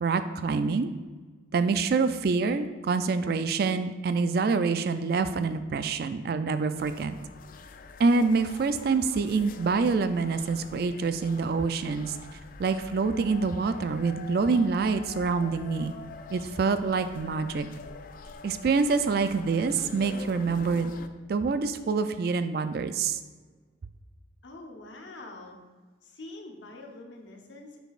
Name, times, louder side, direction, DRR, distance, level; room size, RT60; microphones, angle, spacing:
voice 1, 0.0-0.9 1.5-7.2 8.0-12.2 12.6-15.9 16.3-17.7 18.4-20.9 21.3-23.2, right 4 dB, 55° right, 10 dB, 0.3 m, -26 dB
sound 1, 6.7-21.1, left 4 dB, 45° left, 0.3 m, -45 dB
voice 2, 24.4-25.6 26.0-27.8, left 2 dB, 80° left, 1 dB, 0.9 m, -45 dB
6.8 x 6.0 x 2.4 m, 1.3 s
head